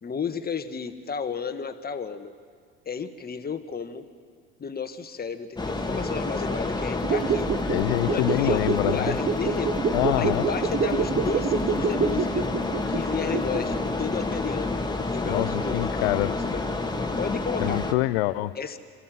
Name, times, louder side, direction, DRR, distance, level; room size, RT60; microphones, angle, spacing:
voice 1, 0.0-2.3 2.8-4.0 4.6-7.5 8.1-9.8 10.2-12.5 12.9-16.6 17.2-17.8 18.6-18.8, left 6 dB, 30° left, 9 dB, 1.5 m, -33 dB
sound 1, 5.6-17.9, left 2 dB, 15° left, 1.9 m, -29 dB
sound 2, 6.9-13.8 14.1-14.2, right 6 dB, 35° right, 1.0 m, -27 dB
voice 2, 7.7-9.2 9.9-10.4 15.2-16.5 17.6-18.5, left 19 dB, 75° left, 16 dB, 0.6 m, -25 dB
27.5 x 15.0 x 7.6 m, 2.1 s
hypercardioid pair, 60°, 32 cm